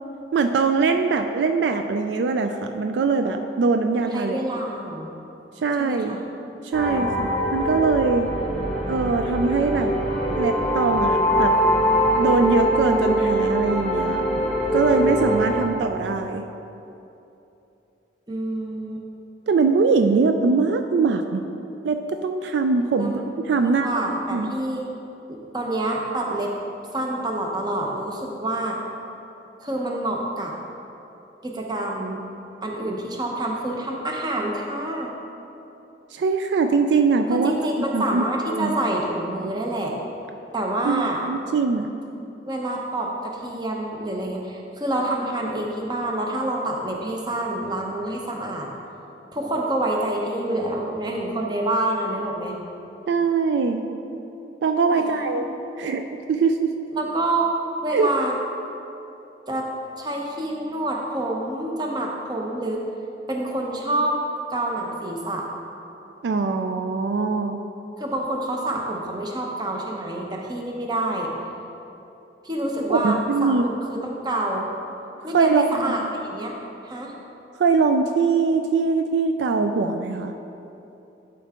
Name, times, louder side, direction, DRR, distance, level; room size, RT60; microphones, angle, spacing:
voice 1, 0.3-4.4 5.6-6.2 6.6-8.3 8.9-9.9 10.3-11.5 12.2-14.2 14.7-16.4 19.5-21.4 21.8-23.9 24.3-24.5 36.1-38.8 40.8-41.9 53.1-53.8 54.6-55.5 55.8-56.7 57.9-58.1 66.2-67.6 72.9-73.6 75.3-75.8 77.6-80.3, right 4 dB, 70° right, 6 dB, 0.3 m, -22 dB
voice 2, 4.1-5.1 5.8-6.2 6.8-7.8 18.3-19.0 23.0-23.2 23.6-24.9 25.3-26.5 26.9-28.8 29.6-30.5 31.4-32.2 32.6-35.1 37.3-40.0 40.5-41.2 42.5-48.7 49.3-52.5 54.9-55.2 56.9-57.5 57.8-58.3 59.5-59.7 60.0-62.8 63.3-64.2 64.5-65.5 68.0-71.3 72.4-73.6 73.9-74.7 75.2-76.6 76.8-77.1, right 1 dB, 25° right, 0 dB, 0.7 m, -27 dB
sound 1, 6.7-15.6, equal, 5° left, 1.1 m, -23 dB
11.0 x 4.5 x 3.6 m, 2.9 s
head